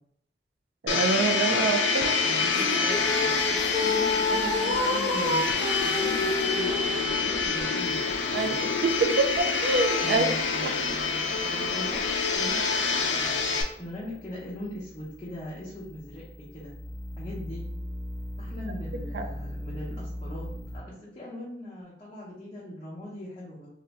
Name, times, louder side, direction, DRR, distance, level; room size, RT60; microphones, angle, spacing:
voice 1, 0.8-2.1 8.3-8.6 8.8-10.3 10.6-10.7 19.1-19.3, right 3 dB, 65° right, 6 dB, 0.4 m, -26 dB
Domestic sounds home sounds, 0.9-13.6, left 4 dB, 85° left, 0.4 m, -27 dB
voice 2, 2.2-5.4 5.9-8.6 10.0-12.0 12.3-16.7 17.2-17.6 18.4-23.7, left 1 dB, 25° left, -9 dB, 0.7 m, -40 dB
sound 1, 2.5-7.1, left 2 dB, 30° right, 0.7 m, -29 dB
sound 2, 2.9-20.8, equal, ahead, 1.2 m, -43 dB
2.5 x 2.2 x 3.9 m, 0.70 s
head